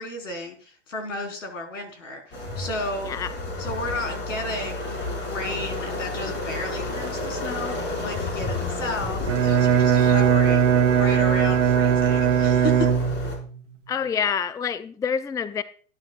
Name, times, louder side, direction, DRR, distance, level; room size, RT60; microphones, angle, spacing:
voice 1, 0.0-3.3 3.6-12.9, left 2 dB, 80° left, 3 dB, 4.4 m, -33 dB
sound 1, 2.3-13.4, left 2 dB, 30° left, 5.4 m, -31 dB
Bowed string instrument, 9.2-13.5, right 8 dB, 80° right, 1.1 m, -19 dB
voice 2, 13.9-15.6, left 7 dB, 10° left, 13 dB, 0.5 m, -27 dB
19.0 x 10.5 x 2.4 m, 0.43 s
hypercardioid pair, 100°, 37 cm